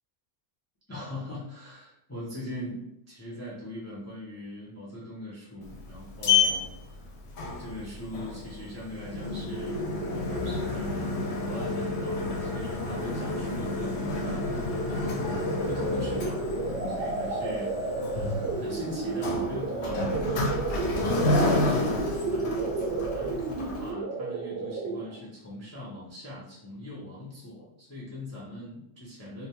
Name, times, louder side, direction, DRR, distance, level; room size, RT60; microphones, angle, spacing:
voice 1, 0.9-7.0 7.6-11.1 11.4-15.3 15.7-29.5, left 1 dB, 25° left, -8 dB, 0.3 m, -41 dB
Sliding door, 5.6-23.9, left 3 dB, 65° left, 0.8 m, -30 dB
sound 1, 15.2-25.2, right 3 dB, 65° right, 0.8 m, -32 dB
2.2 x 2.2 x 2.8 m, 0.79 s
omnidirectional pair, 1.3 m